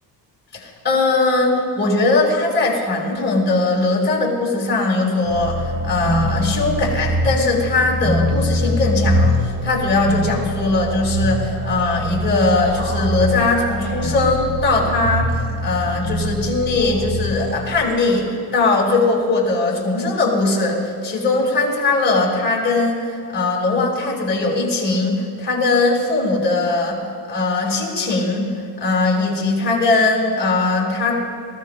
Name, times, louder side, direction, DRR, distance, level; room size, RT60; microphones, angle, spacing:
voice 1, 0.5-18.3 18.5-28.4 28.8-31.2, left 3 dB, 25° left, -3 dB, 4.6 m, -20 dB
sound 1, 5.2-17.7, equal, 35° right, 3.4 m, -23 dB
27.5 x 16.5 x 2.2 m, 2.3 s
cardioid pair, 140°, 42 cm